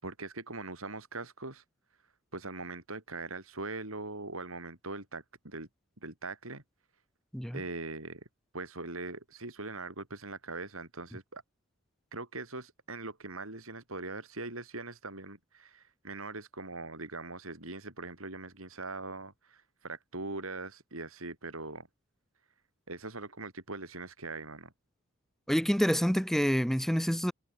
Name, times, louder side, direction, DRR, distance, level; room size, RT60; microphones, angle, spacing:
voice 1, 0.0-1.6 2.3-5.7 6.0-6.6 7.5-8.3 8.5-11.4 12.1-21.9 22.9-24.7, right 3 dB, 80° right, 5.5 m, -41 dB
voice 2, 25.5-27.3, equal, ahead, 1.1 m, -27 dB
head